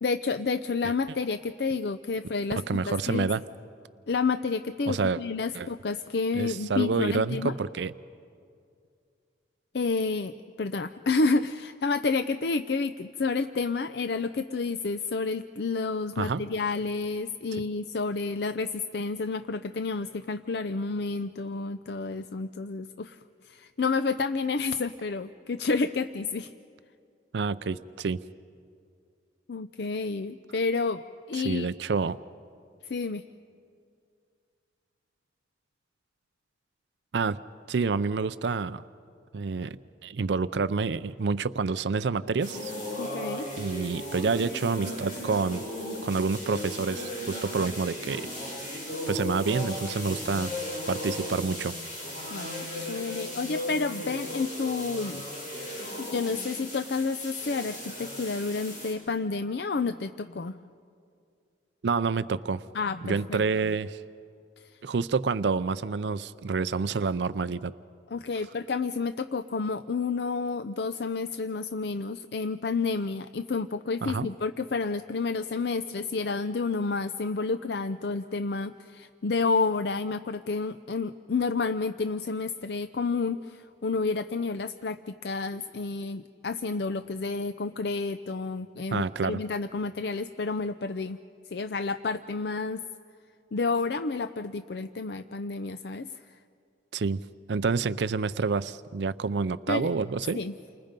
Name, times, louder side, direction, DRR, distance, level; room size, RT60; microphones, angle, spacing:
voice 1, 0.0-3.3 4.1-7.5 9.7-23.2 23.4-26.5 29.5-31.0 31.3-31.7 32.8-33.2 43.0-43.5 52.3-55.2 56.0-60.6 62.7-63.4 68.1-91.2 91.5-92.8 93.5-96.3 99.7-99.9 100.4-100.5, left 4 dB, 65° left, 11 dB, 0.5 m, -30 dB
voice 2, 2.6-3.4 4.9-5.2 5.5-5.7 6.4-7.9 16.2-16.4 27.3-28.2 31.3-32.2 37.1-37.4 37.7-38.8 39.3-42.7 43.6-45.6 46.0-48.2 49.1-50.5 50.9-51.7 61.8-62.6 63.0-64.0 64.8-67.7 74.0-74.3 88.9-89.4 96.9-97.2 97.5-100.4, right 4 dB, 70° right, 14 dB, 0.5 m, -28 dB
sound 1, 42.4-58.9, left 1 dB, 45° left, 6.6 m, -36 dB
29.5 x 25.5 x 5.2 m, 2.4 s
head